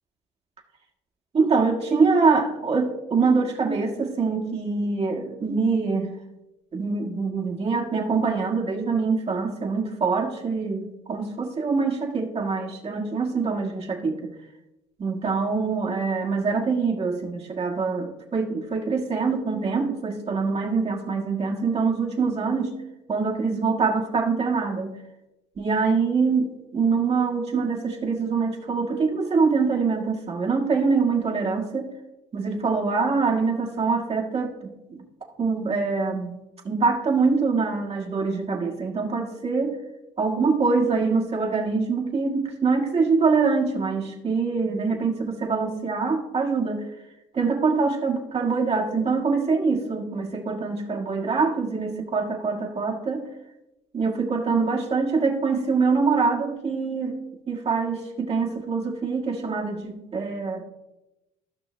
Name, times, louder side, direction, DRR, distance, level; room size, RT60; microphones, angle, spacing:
voice 1, 1.3-6.2 6.7-14.3 15.0-22.8 23.1-25.0 25.6-31.9 32.3-35.0 35.4-36.4 36.6-39.8 40.2-46.9 47.3-53.3 53.9-57.2 57.5-60.6, right 4 dB, 40° right, 0 dB, 1.8 m, -24 dB
15.5 x 5.6 x 3.3 m, 0.99 s
supercardioid pair, 65°, 16 cm